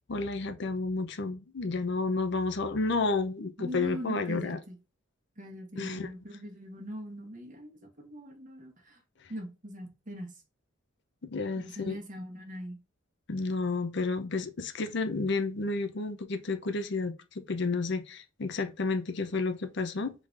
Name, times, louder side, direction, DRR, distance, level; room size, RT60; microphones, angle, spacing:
voice 1, 0.1-4.6 5.8-6.1 11.2-12.0 13.3-20.1, left 3 dB, 55° left, 0.6 m, -31 dB
voice 2, 3.6-4.8 5.4-9.0 9.3-10.4 11.6-12.8, equal, 40° right, 1.3 m, -41 dB
4.9 x 3.8 x 2.5 m
head